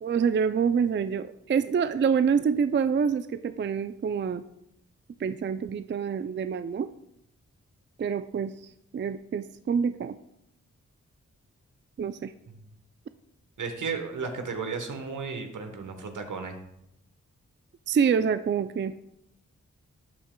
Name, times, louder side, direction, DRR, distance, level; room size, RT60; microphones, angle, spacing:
voice 1, 0.0-4.4 5.2-6.9 8.0-8.5 8.9-10.2 12.0-12.3 17.9-18.9, right 6 dB, 40° right, 11 dB, 0.4 m, -26 dB
voice 2, 13.6-16.6, right 5 dB, 75° right, 6 dB, 1.2 m, -34 dB
12.0 x 7.6 x 2.3 m, 0.79 s
cardioid pair, 45°, 31 cm